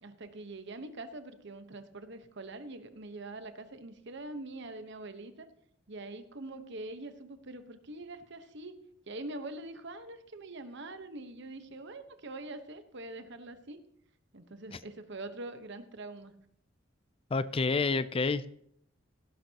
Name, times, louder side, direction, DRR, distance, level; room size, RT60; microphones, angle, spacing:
voice 1, 0.0-5.5 5.9-8.8 9.1-13.8 14.3-16.3, right 2 dB, 60° right, 9 dB, 1.1 m, -44 dB
voice 2, 17.3-18.5, left 4 dB, 30° left, 16 dB, 0.4 m, -28 dB
16.0 x 12.0 x 2.9 m, 0.70 s
head